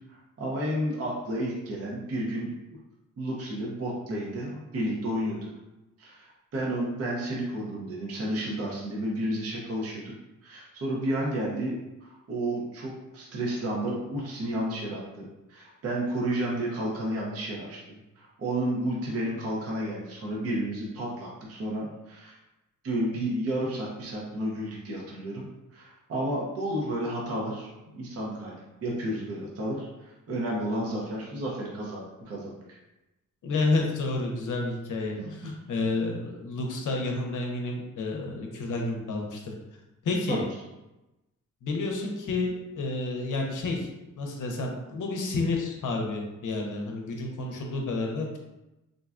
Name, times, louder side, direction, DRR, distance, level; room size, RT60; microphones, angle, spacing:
voice 1, 0.1-2.5 3.2-5.4 6.0-10.1 10.4-17.8 18.2-22.4 22.8-25.4 25.7-32.8 35.1-35.5 40.3-40.4, right 1 dB, 50° right, -4 dB, 0.6 m, -32 dB
voice 2, 33.4-39.4 40.0-40.4 41.6-43.9 44.2-48.4, left 3 dB, 70° left, 1 dB, 0.6 m, -30 dB
3.7 x 2.1 x 2.4 m, 0.99 s
wide cardioid pair, 180°, 32 cm